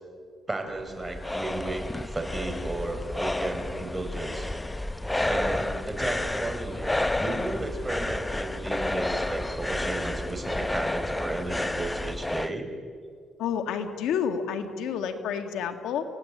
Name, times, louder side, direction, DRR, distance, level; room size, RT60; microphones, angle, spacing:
voice 1, 0.5-4.5 5.3-12.7, right 2 dB, 15° right, 4 dB, 5.5 m, -34 dB
sound 1, 0.7-12.5, left 1 dB, 10° left, 0.8 m, -30 dB
voice 2, 13.4-16.1, left 7 dB, 85° left, 7 dB, 2.0 m, -29 dB
29.5 x 18.0 x 8.9 m, 2.2 s
cardioid pair, 90°, 0 cm